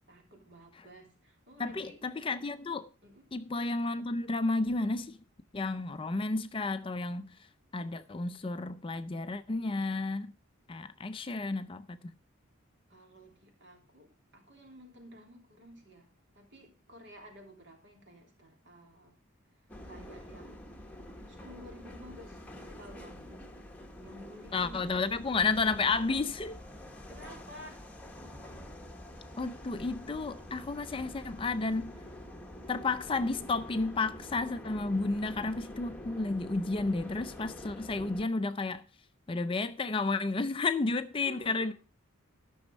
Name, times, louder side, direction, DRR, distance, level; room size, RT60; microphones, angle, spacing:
voice 1, 0.1-2.0 3.0-3.2 12.9-16.1 16.3-19.2 19.8-20.7 21.3-23.5 24.0-25.0 27.1-27.8 41.2-41.7, equal, 55° right, 3.2 m, -52 dB
voice 2, 1.6-2.9 3.3-5.2 5.5-7.3 7.7-10.3 10.7-12.1 24.5-26.5 29.4-32.0 32.7-38.8 39.3-41.7, left 3 dB, 25° left, 0.4 m, -32 dB
sound 1, 19.7-38.3, left 1 dB, 5° left, 1.1 m, -47 dB
13.0 x 6.2 x 5.2 m
head